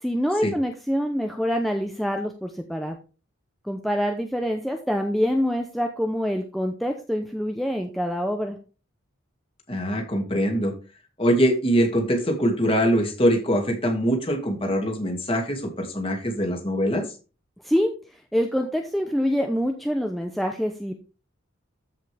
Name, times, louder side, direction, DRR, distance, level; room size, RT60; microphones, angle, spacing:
voice 1, 0.0-3.0 3.6-8.6 17.6-17.9 18.3-20.9, equal, ahead, 3 dB, 0.7 m, -25 dB
voice 2, 9.7-10.7 11.2-17.0, equal, 30° left, 3 dB, 2.3 m, -23 dB
14.0 x 5.4 x 3.4 m, 0.34 s
head